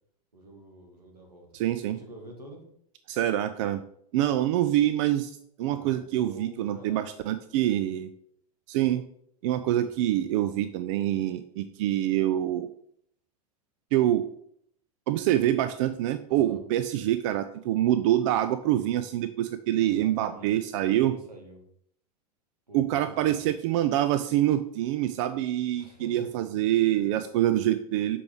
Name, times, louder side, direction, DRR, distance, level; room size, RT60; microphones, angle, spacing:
voice 1, 0.3-1.5 1.9-2.6 5.6-7.3 9.8-10.2 16.3-16.6 19.7-20.5 20.8-21.6 22.7-23.4 25.7-26.3 27.0-27.2, right 1 dB, 90° right, 1 dB, 1.6 m, -47 dB
voice 2, 1.5-2.0 3.1-3.8 4.1-8.1 8.7-9.0 9.4-12.7 13.9-14.3 15.1-21.1 22.7-28.2, right 13 dB, 55° right, 11 dB, 0.4 m, -26 dB
6.8 x 4.6 x 3.5 m, 0.68 s
figure-of-eight pair, 85°, 20 cm